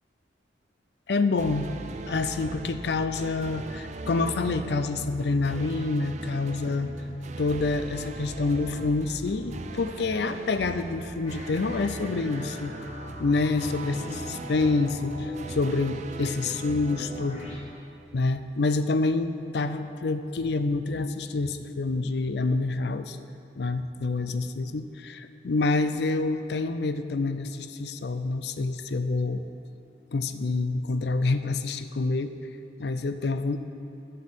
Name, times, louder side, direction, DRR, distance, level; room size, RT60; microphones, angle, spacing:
voice 1, 1.1-1.7 2.1-6.9 7.4-12.8 13.2-17.5 18.1-23.2 23.6-29.4 30.1-32.3 32.8-33.6, left 3 dB, 60° left, 10 dB, 0.5 m, -27 dB
sound 1, 1.4-18.4, right 3 dB, 40° right, 0.4 m, -39 dB
sound 2, 11.2-17.6, left 1 dB, 35° left, 1.9 m, -44 dB
12.0 x 4.6 x 8.0 m, 2.7 s
head